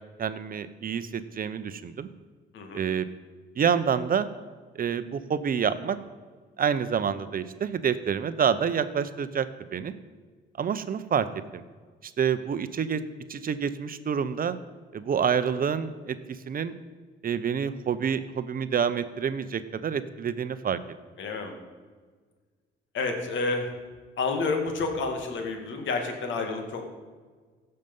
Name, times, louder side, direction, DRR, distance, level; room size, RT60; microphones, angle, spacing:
voice 1, 0.2-2.1 2.7-3.1 3.6-4.3 4.7-6.0 6.6-9.9 10.6-11.3 11.5-11.6 12.0-13.0 13.3-14.6 14.9-16.7 17.2-20.8, right 7 dB, 45° right, 13 dB, 0.8 m, -28 dB
voice 2, 2.5-2.8 21.2-21.6 22.9-23.7 24.2-26.8, left 3 dB, 75° left, 4 dB, 2.1 m, -29 dB
16.0 x 6.7 x 5.4 m, 1.5 s
cardioid pair, 90°, 20 cm